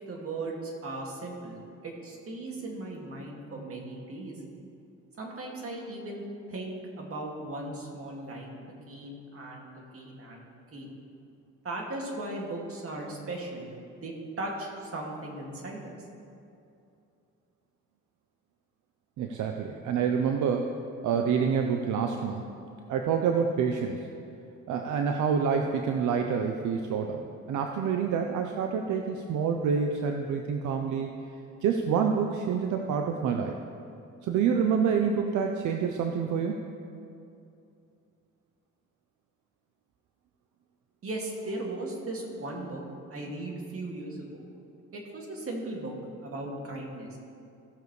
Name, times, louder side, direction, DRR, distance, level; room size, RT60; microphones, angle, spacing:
voice 1, 0.1-4.4 5.2-10.4 10.7-10.9 11.6-13.7 14.0-16.0 41.0-42.8 43.1-44.4 44.9-45.9 46.2-47.2, right 2 dB, 50° right, -1 dB, 2.2 m, -37 dB
voice 2, 19.2-20.7 21.0-22.5 22.9-24.0 24.7-27.2 27.5-31.1 31.6-33.6 34.2-36.7, right 6 dB, 75° right, 4 dB, 0.7 m, -27 dB
17.0 x 6.9 x 3.2 m, 2.6 s
cardioid pair, 90°, 30 cm